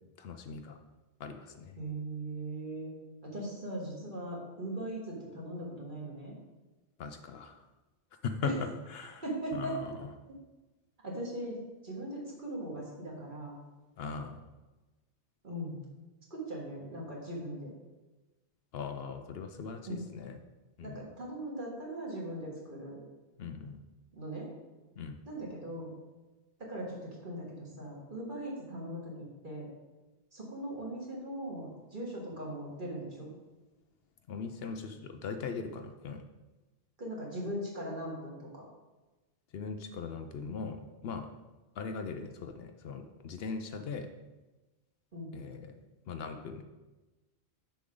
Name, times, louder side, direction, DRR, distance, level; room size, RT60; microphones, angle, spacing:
voice 1, 0.2-0.8 1.2-1.8 7.0-7.6 8.2-9.2 9.5-10.1 14.0-14.4 18.7-20.4 20.8-21.1 23.4-23.8 25.0-25.2 34.3-36.2 39.5-41.3 41.8-44.1 45.3-45.7 46.1-46.6, left 5 dB, 65° left, 7 dB, 0.8 m, -40 dB
voice 2, 1.8-2.9 3.2-6.4 8.4-8.5 9.2-9.8 10.3-10.4 11.0-13.6 15.4-15.8 16.3-17.7 19.9-20.0 20.8-23.0 24.1-24.5 25.3-25.9 26.6-29.7 30.3-33.3 37.0-38.6 45.1-45.3, right 1 dB, 45° right, -3 dB, 1.9 m, -39 dB
6.9 x 6.3 x 3.8 m, 1.1 s
omnidirectional pair, 1.1 m